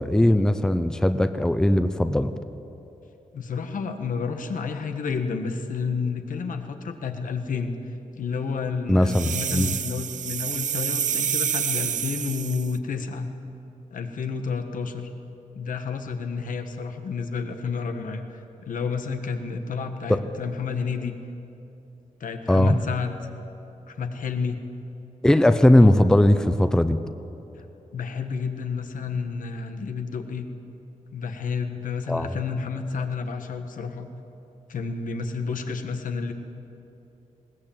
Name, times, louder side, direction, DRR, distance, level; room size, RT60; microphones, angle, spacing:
voice 1, 0.0-2.3 8.9-9.7 20.1-20.2 22.5-22.8 25.2-27.0 32.1-32.3, left 1 dB, 5° left, 10 dB, 0.6 m, -19 dB
voice 2, 3.3-7.7 8.2-13.3 13.9-15.1 15.5-21.2 22.2-23.2 23.9-24.6 27.6-27.7 27.9-30.5 31.1-34.1 34.7-36.3, left 5 dB, 85° left, 6 dB, 1.6 m, -30 dB
sound 1, 9.1-12.8, right 8 dB, 70° right, 0.6 m, -28 dB
20.5 x 18.0 x 8.9 m, 3.0 s
wide cardioid pair, 160°, 13 cm